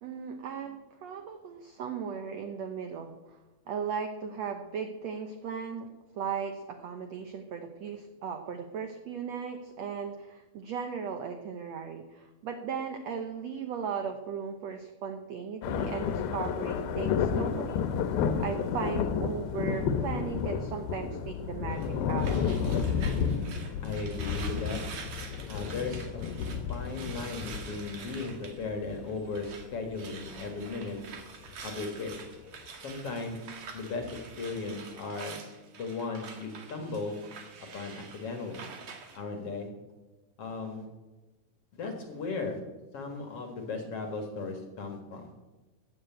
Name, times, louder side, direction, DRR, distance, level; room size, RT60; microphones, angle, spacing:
voice 1, 0.0-3.4 3.7-5.9 6.1-17.8 18.2-22.5, right 6 dB, 85° right, 6 dB, 1.5 m, -37 dB
sound 1, 15.6-29.8 30.3-30.6 31.5-31.7 32.5-32.6 34.0-34.1, left 7 dB, 75° left, 2.7 m, -31 dB
sound 2, 21.7-29.7 29.9-39.2, right 5 dB, 50° right, 2.7 m, -46 dB
voice 2, 23.8-24.8 25.5-26.2 26.7-31.0 31.6-32.1 32.8-33.4 33.7-35.4 35.8-37.2 37.7-38.6 39.1-39.7 40.4-40.9 41.7-42.6 42.9-45.3, left 3 dB, 45° left, 4 dB, 2.2 m, -36 dB
14.5 x 8.2 x 9.1 m, 1.1 s
omnidirectional pair, 4.5 m